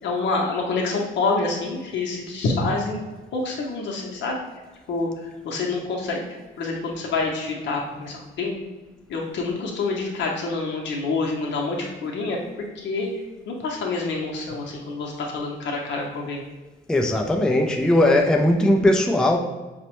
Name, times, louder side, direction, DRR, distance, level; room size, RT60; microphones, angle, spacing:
voice 1, 0.0-3.0 3.3-4.4 4.9-6.2 6.6-8.6 9.1-12.4 12.7-16.4, left 3 dB, 65° left, -1 dB, 0.7 m, -27 dB
voice 2, 16.9-19.4, left 1 dB, 5° left, 3 dB, 0.3 m, -19 dB
4.3 x 2.0 x 2.9 m, 1.2 s
cardioid pair, 90°, 20 cm